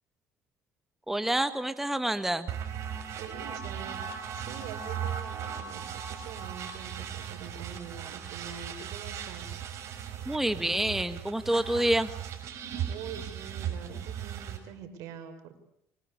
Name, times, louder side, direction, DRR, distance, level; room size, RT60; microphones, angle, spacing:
voice 1, 1.1-2.5 10.3-12.1, right 1 dB, 5° right, 10 dB, 1.6 m, -27 dB
sound 1, 2.5-14.6, right 8 dB, 55° right, 6.1 m, -37 dB
voice 2, 3.2-4.1 4.3-9.5 12.8-15.6, right 7 dB, 70° right, 8 dB, 5.8 m, -44 dB
25.5 x 24.0 x 8.6 m, 0.77 s
cardioid pair, 110°, 6 cm